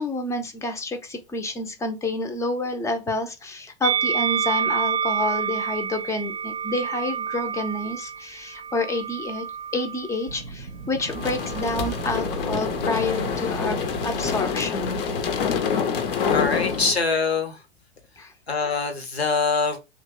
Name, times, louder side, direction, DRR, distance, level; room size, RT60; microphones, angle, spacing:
voice 1, 0.0-9.4 9.7-15.0 18.2-18.3, left 2 dB, 10° left, 0.4 m, -29 dB
Musical instrument, 3.8-10.2 11.1-12.1, right 7 dB, 40° right, 0.6 m, -28 dB
Wind, 10.3-17.2, right 3 dB, 85° right, 0.5 m, -37 dB
sound 1, 11.1-16.9, left 7 dB, 60° left, 0.6 m, -26 dB
voice 2, 16.3-17.6 18.5-19.8, left 4 dB, 85° left, 0.9 m, -24 dB
2.8 x 2.1 x 3.6 m
figure-of-eight pair, 95°, 31 cm